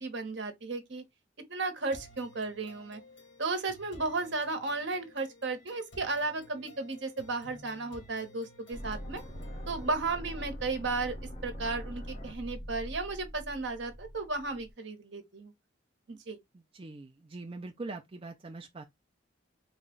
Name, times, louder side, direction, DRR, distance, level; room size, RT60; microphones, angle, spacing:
voice 1, 0.0-1.0 1.5-3.0 3.4-9.2 9.7-11.2 11.4-15.5 16.1-16.4, right 3 dB, 65° right, 1.0 m, -34 dB
sound 1, 1.9-9.9, left 1 dB, 65° left, 2.1 m, -54 dB
sound 2, 8.7-14.7, equal, 35° left, 1.2 m, -42 dB
voice 2, 16.5-18.8, right 3 dB, 30° right, 0.4 m, -43 dB
4.1 x 2.3 x 3.7 m
head